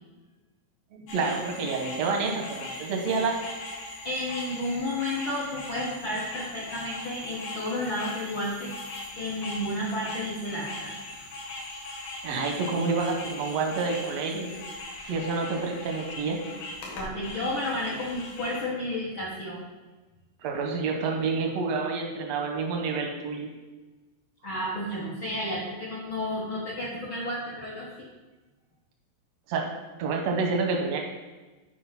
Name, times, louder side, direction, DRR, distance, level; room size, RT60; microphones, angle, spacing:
voice 1, 0.9-3.4 12.2-14.5 15.1-16.4 20.4-23.5 29.5-29.6 30.0-31.1, right 4 dB, 75° right, 2 dB, 1.5 m, -28 dB
sound 1, 1.1-18.6, left 2 dB, 85° left, 3.6 m, -40 dB
voice 2, 4.0-8.7 9.1-10.9 16.8-19.6 24.4-27.9, left 1 dB, 70° left, -5 dB, 1.1 m, -32 dB
9.1 x 4.7 x 5.8 m, 1.2 s
omnidirectional pair, 4.3 m